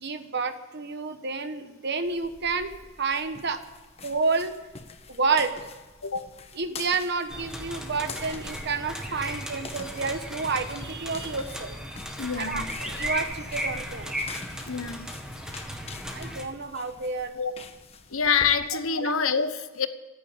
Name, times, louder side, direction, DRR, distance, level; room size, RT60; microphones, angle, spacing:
voice 1, 0.0-2.7 3.0-3.6 4.0-4.5 5.1-5.6 6.6-11.8 12.4-14.1 16.1-17.3 19.0-19.1, right 4 dB, 55° right, 9 dB, 1.2 m, -29 dB
sound 1, 2.1-18.5, left 4 dB, 30° left, 1.2 m, -46 dB
sound 2, 7.3-16.5, equal, 5° right, 1.8 m, -36 dB
voice 2, 12.2-12.7 14.7-15.1 17.3-17.5 18.1-19.9, left 6 dB, 80° left, 10 dB, 1.2 m, -26 dB
15.0 x 10.5 x 8.7 m, 1.3 s
head